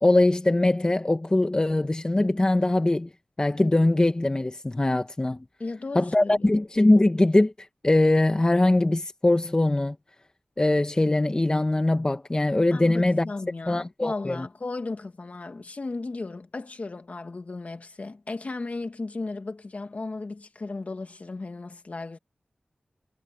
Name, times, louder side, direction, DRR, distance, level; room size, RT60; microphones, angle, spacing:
voice 1, 0.0-3.1 3.4-5.4 5.9-10.0 10.6-13.3 13.7-14.5, left 2 dB, 30° left, 1.3 m, -22 dB
voice 2, 5.6-6.5 12.7-22.2, left 3 dB, 55° left, 2.5 m, -35 dB
wide cardioid pair, 65°, 3 cm